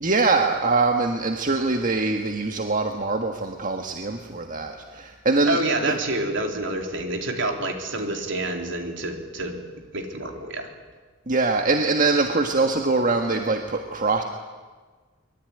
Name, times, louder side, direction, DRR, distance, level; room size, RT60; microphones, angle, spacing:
voice 1, 0.0-5.6 5.8-6.0 11.3-14.2, right 3 dB, 40° right, 4 dB, 1.6 m, -23 dB
voice 2, 5.5-9.6 9.9-10.7, right 2 dB, 60° right, 4 dB, 3.9 m, -28 dB
24.5 x 22.0 x 9.9 m, 1.4 s
head